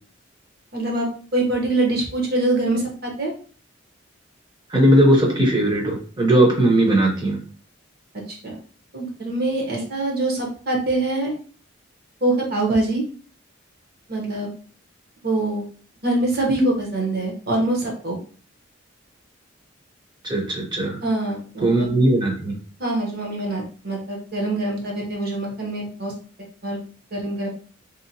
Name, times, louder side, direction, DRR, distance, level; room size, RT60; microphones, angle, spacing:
voice 1, 0.7-3.3 8.3-8.6 8.9-11.3 12.2-13.0 14.1-14.5 15.2-15.7 16.0-18.2 21.0-21.9 22.8-26.1 26.4-26.8 27.1-27.5, right 2 dB, 50° right, -2 dB, 0.9 m, -24 dB
voice 2, 4.7-7.4 20.2-21.0 21.6-22.6, right 1 dB, 25° right, -1 dB, 0.7 m, -18 dB
2.8 x 2.1 x 2.7 m, 0.41 s
head